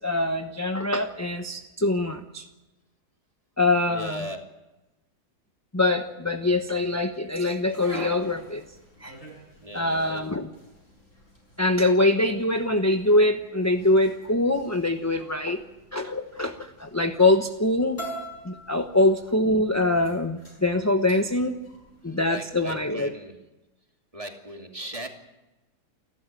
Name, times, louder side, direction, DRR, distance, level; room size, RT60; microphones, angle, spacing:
voice 1, 0.0-2.5 3.6-4.2 5.7-8.6 9.0-9.1 9.7-10.5 11.6-15.6 15.9-18.0 18.4-21.6 22.0-23.1, left 2 dB, 15° left, 6 dB, 0.8 m, -23 dB
voice 2, 3.9-4.5 9.6-10.3 22.0-23.4 24.1-25.1, right 1 dB, 20° right, 2 dB, 2.7 m, -38 dB
sound 1, 7.7-22.9, right 1 dB, 50° left, 7.6 m, -45 dB
29.5 x 12.5 x 9.2 m, 1.0 s
omnidirectional pair, 1.8 m